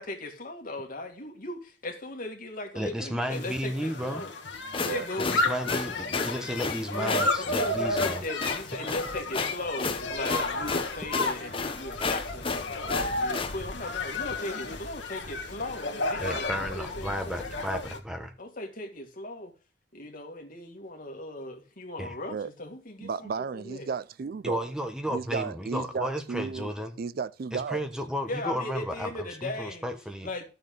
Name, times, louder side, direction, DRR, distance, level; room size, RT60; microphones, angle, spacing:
voice 1, 0.0-4.3 4.9-5.6 6.9-17.4 18.4-19.5 19.9-23.3 23.6-23.9 28.3-29.8 30.2-30.4, left 2 dB, 50° left, 2.2 m, -38 dB
voice 2, 2.7-4.2 5.2-8.3 16.2-18.3 22.0-22.2 24.4-27.0 27.5-30.3, equal, 5° right, 1.1 m, -33 dB
sound 1, 3.3-18.0, left 2 dB, 90° left, 1.6 m, -33 dB
sound 2, 4.5-13.5, left 4 dB, 30° left, 0.9 m, -32 dB
voice 3, 23.0-24.7 25.1-26.7 27.0-27.8, right 5 dB, 55° right, 0.4 m, -34 dB
12.5 x 6.8 x 3.9 m
head